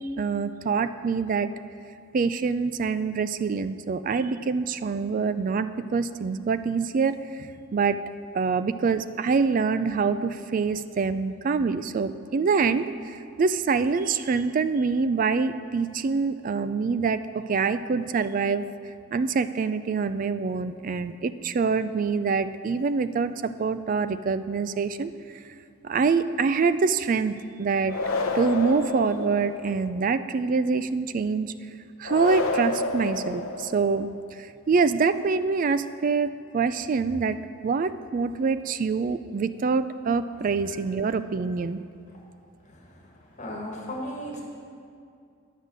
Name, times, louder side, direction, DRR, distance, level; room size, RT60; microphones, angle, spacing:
voice 1, 0.0-1.5 2.1-8.0 8.3-18.7 19.1-25.4 25.8-28.0 28.3-31.5 32.0-34.1 34.7-37.4 37.6-41.8, right 5 dB, 40° right, 13 dB, 0.3 m, -25 dB
sound 1, 27.9-29.9 32.0-34.1, left 3 dB, 90° left, 0.7 m, -29 dB
voice 2, 43.4-44.4, equal, 35° left, -2 dB, 1.5 m, -34 dB
9.9 x 6.4 x 6.6 m, 2.4 s
head